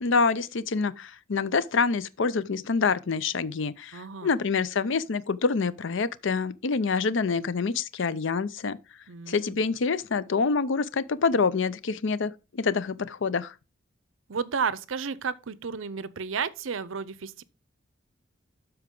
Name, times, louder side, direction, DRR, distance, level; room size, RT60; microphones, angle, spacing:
voice 1, 0.0-8.8 9.3-13.5, left 4 dB, 70° left, 0.6 m, -26 dB
voice 2, 3.9-4.3 9.1-9.6 14.3-17.4, right 5 dB, 85° right, 0.6 m, -32 dB
12.5 x 4.7 x 3.8 m
head